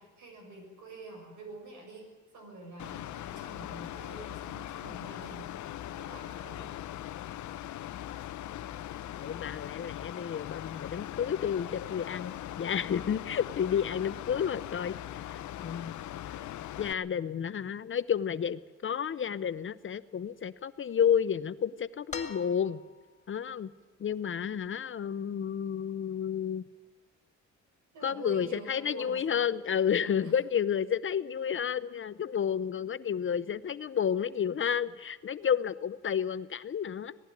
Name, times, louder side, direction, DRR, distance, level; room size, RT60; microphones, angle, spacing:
voice 1, 0.0-5.5 5.9-6.7 27.9-29.4 30.0-30.4, right 2 dB, 80° right, 2 dB, 7.0 m, -47 dB
Mechanical fan, 2.8-16.9, left 12 dB, 75° left, 0.8 m, -40 dB
voice 2, 9.2-15.9 16.8-22.8 23.3-23.7 24.0-26.6 28.0-37.2, left 8 dB, 40° left, 15 dB, 0.7 m, -31 dB
sound 1, 22.1-23.1 24.6-24.7, left 5 dB, 25° left, 2.2 m, -42 dB
19.0 x 15.0 x 9.2 m, 1.3 s
cardioid pair, 90°, 30 cm